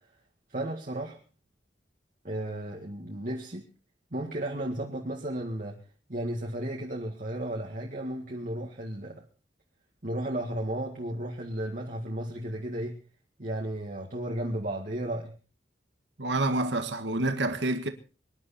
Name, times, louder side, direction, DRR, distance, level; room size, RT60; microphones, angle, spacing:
voice 1, 0.5-1.2 2.2-3.6 4.1-5.8 6.1-9.2 10.0-13.0 13.4-15.3, right 1 dB, 45° right, 2.0 m, -34 dB
voice 2, 16.2-17.9, right 2 dB, 75° right, 1.7 m, -28 dB
24.5 x 11.0 x 4.3 m
head